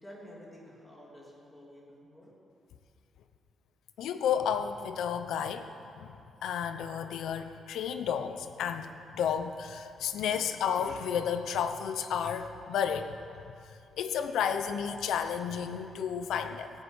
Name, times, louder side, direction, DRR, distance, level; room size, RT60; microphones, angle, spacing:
voice 1, 0.0-2.3, equal, 10° left, -4 dB, 3.3 m, -51 dB
voice 2, 4.0-5.7 5.9-13.1 14.0-16.7, left 8 dB, 85° left, 9 dB, 0.8 m, -32 dB
17.5 x 8.3 x 8.3 m, 2.7 s
cardioid pair, 150°, 0 cm